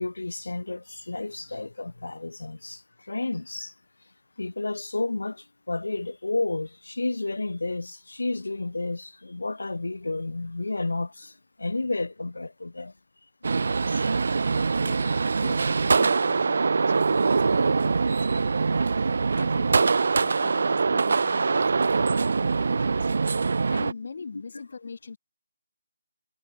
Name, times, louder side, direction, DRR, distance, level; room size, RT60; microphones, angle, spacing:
voice 1, 0.0-3.7 4.4-11.3 11.6-12.9 13.4-13.6 13.9-14.4 24.1-24.2, left 2 dB, 85° left, 0.8 m, -31 dB
sound 1, 13.4-23.9, right 4 dB, 60° right, 0.3 m, -23 dB
voice 2, 14.7-23.1 23.7-25.2, left 5 dB, 60° left, 1.8 m, -43 dB
figure-of-eight pair, 155°, 0 cm